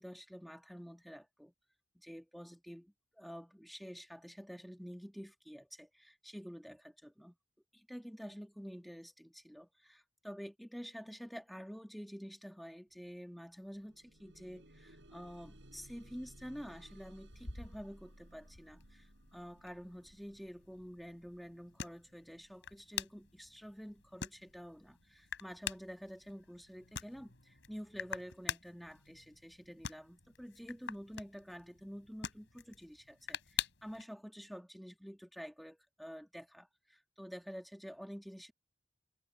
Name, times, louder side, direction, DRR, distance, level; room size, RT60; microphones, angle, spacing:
voice 1, 0.0-1.5 1.9-7.4 7.7-38.5, equal, ahead, 2.7 m, -49 dB
sound 1, 12.9-13.1 13.4-24.4 25.2-25.3 25.8-25.9, right 1 dB, 75° right, 5.2 m, -60 dB
sound 2, 17.3-34.0, left 7 dB, 85° left, 3.5 m, -47 dB
head